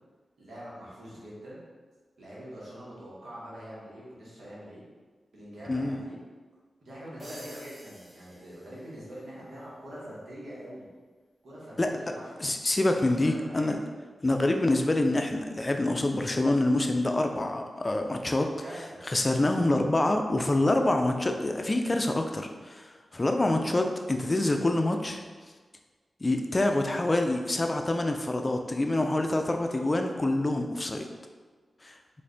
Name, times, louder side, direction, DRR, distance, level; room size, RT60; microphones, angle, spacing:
voice 1, 0.4-1.6 2.2-4.8 5.3-6.2 6.8-10.9 11.4-12.5 13.2-13.8 18.6-19.4, equal, 75° right, -7 dB, 1.3 m, -44 dB
voice 2, 5.7-6.0 11.8-11.9 12.4-13.8 14.2-18.5 19.1-25.2 26.2-31.1 31.8-32.0, left 2 dB, 35° left, 4 dB, 0.4 m, -26 dB
sound 1, 7.2-9.3, equal, 30° right, 1.2 m, -50 dB
3.6 x 2.6 x 3.4 m, 1.4 s
cardioid pair, 40°, 0 cm